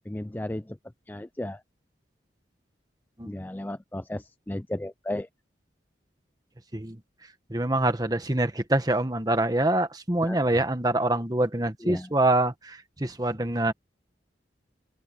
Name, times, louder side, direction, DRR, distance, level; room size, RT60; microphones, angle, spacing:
voice 1, 0.1-0.8 1.1-1.6 3.3-5.3 10.2-10.4 11.8-12.1, left 1 dB, 10° left, 0.4 m, -34 dB
voice 2, 7.5-13.7, right 1 dB, 20° right, 1.5 m, -25 dB
open air
head